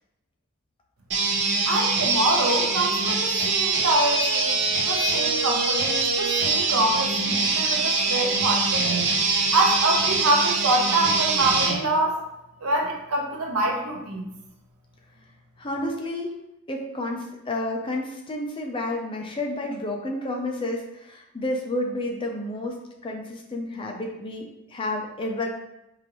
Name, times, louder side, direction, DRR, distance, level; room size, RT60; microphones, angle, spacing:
sound 1, 1.1-11.8, right 3 dB, 50° right, 0.6 m, -23 dB
voice 1, 1.6-9.0 9.5-12.2 12.6-14.3, right 2 dB, 85° right, 1 dB, 0.8 m, -25 dB
voice 2, 15.6-16.4 16.7-25.5, left 1 dB, 25° left, 1 dB, 0.5 m, -30 dB
4.8 x 2.6 x 3.0 m, 0.89 s
head